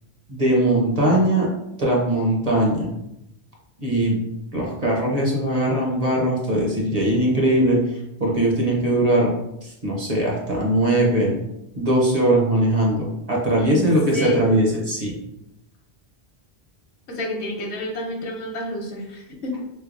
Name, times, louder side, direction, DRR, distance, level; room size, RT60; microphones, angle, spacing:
voice 1, 0.3-1.5 1.8-2.9 3.8-4.2 4.5-9.3 9.6-11.3 11.8-15.2, right 1 dB, 40° right, -2 dB, 0.7 m, -20 dB
voice 2, 13.6-14.7 17.1-19.6, left 1 dB, 80° left, 1 dB, 1.0 m, -30 dB
3.2 x 3.2 x 2.4 m, 0.85 s
omnidirectional pair, 1.1 m